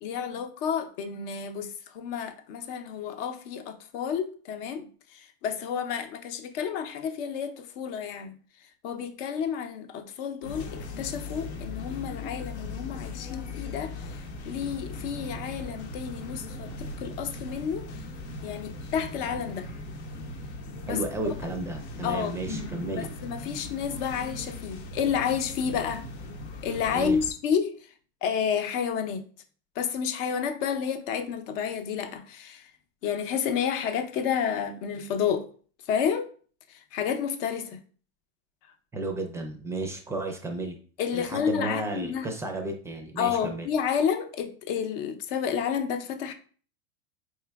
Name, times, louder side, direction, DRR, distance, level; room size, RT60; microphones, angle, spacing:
voice 1, 0.0-4.9 5.1-8.3 8.8-17.9 18.4-19.7 20.9-21.0 22.0-22.4 23.0-26.0 26.6-27.7 28.2-29.2 29.8-32.6 33.0-35.5 35.9-36.3 36.7-37.8 41.0-42.3 43.2-46.3, left 7 dB, 60° left, 0.7 m, -30 dB
sound 1, 10.4-27.3, left 2 dB, 85° left, 1.0 m, -39 dB
voice 2, 20.9-23.1 26.9-27.2 38.9-40.8 41.1-43.7, right 2 dB, 10° right, 0.4 m, -33 dB
4.6 x 3.1 x 2.3 m
supercardioid pair, 130°, 32 cm